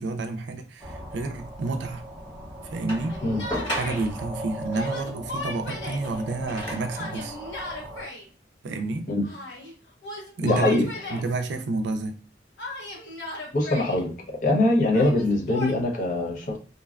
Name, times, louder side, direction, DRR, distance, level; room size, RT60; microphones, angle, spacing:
voice 1, 0.0-2.0 2.7-3.2 3.7-7.4 8.6-9.1 10.4-10.8 11.1-12.2, right 3 dB, 80° right, 0.4 m, -29 dB
sound 1, 0.8-8.0, right 1 dB, 10° right, 0.5 m, -38 dB
sound 2, 2.9-4.3 5.8-7.0 7.9-8.0, left 1 dB, 25° left, 1.3 m, -35 dB
Yell, 3.1-4.1 4.7-6.1 6.9-8.3 9.2-9.7 10.0-11.3 12.6-14.0 14.9-15.8, left 1 dB, 80° left, 0.8 m, -36 dB
voice 2, 10.4-10.9 13.5-16.6, left 2 dB, 45° left, 0.5 m, -23 dB
2.6 x 2.2 x 2.3 m
head